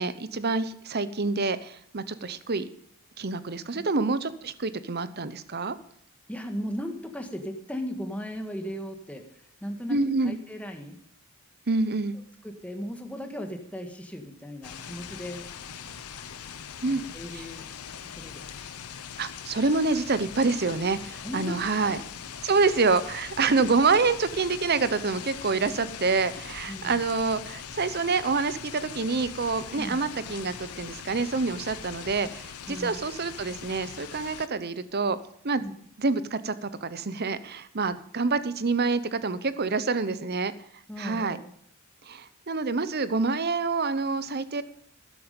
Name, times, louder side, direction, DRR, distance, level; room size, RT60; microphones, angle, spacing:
voice 1, 0.0-2.7 3.2-5.8 9.9-10.4 11.7-12.2 16.8-17.0 17.3-17.4 19.2-22.0 22.4-35.2 35.4-35.6 36.0-40.5 41.0-41.4 42.0-44.6, right 4 dB, 45° right, 14 dB, 0.8 m, -27 dB
voice 2, 6.3-11.0 12.4-15.5 16.8-17.6 18.2-18.5 21.2-22.0 26.7-27.0 29.8-30.0 32.7-32.9 35.6-35.7 37.9-38.0 40.9-41.5, equal, 5° left, 4 dB, 1.6 m, -37 dB
sound 1, 14.6-34.5, left 7 dB, 90° left, 0.9 m, -41 dB
13.0 x 10.5 x 5.2 m, 0.68 s
head